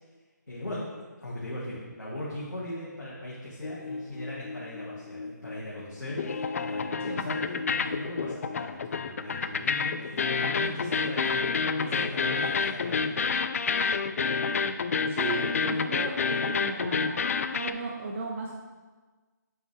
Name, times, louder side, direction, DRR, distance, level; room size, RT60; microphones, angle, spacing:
voice 1, 0.5-0.9 1.2-6.3 6.6-11.4 11.7-13.4, left 1 dB, 90° left, -7 dB, 1.6 m, -39 dB
sound 1, 3.6-5.8 6.1-17.7, left 5 dB, 50° left, 0.3 m, -29 dB
voice 2, 15.1-18.5, right 4 dB, 40° right, -1 dB, 0.7 m, -36 dB
7.5 x 4.8 x 3.2 m, 1.3 s
figure-of-eight pair, 150°, 10 cm